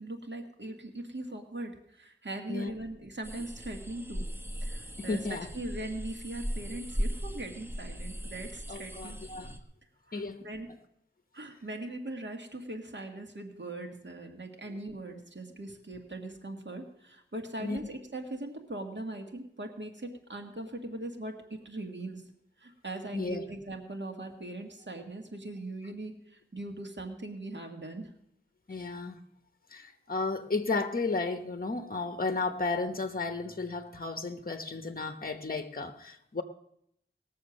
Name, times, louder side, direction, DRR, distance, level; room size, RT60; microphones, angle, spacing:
voice 1, 0.0-4.2 4.6-5.2 5.5-9.2 10.1-10.7 11.3-22.2 22.6-28.1 28.7-28.8, right 2 dB, 60° right, 1.9 m, -40 dB
sound 1, 3.2-9.6, equal, 10° right, 1.3 m, -38 dB
voice 2, 5.0-5.5 8.7-9.5 10.1-10.5 14.7-14.8 17.6-17.8 23.1-23.4 28.7-29.2 29.7-36.4, left 3 dB, 45° left, 1.0 m, -33 dB
19.0 x 7.0 x 6.4 m
wide cardioid pair, 60°, 21 cm